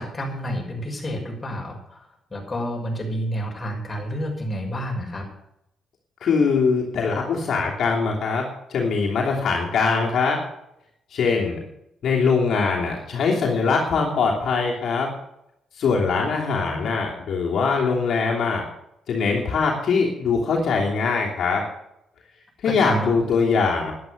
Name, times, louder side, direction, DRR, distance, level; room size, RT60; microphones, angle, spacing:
voice 1, 0.0-5.3 16.1-16.3 16.5-16.9 22.6-23.2, equal, 25° left, 1 dB, 5.8 m, -30 dB
voice 2, 6.2-8.4 8.7-10.4 11.1-11.6 12.0-15.1 15.7-18.6 19.1-21.6 22.6-23.9, left 5 dB, 65° left, -2 dB, 3.0 m, -22 dB
11.5 x 11.0 x 6.6 m, 0.79 s
cardioid pair, 90°, 0 cm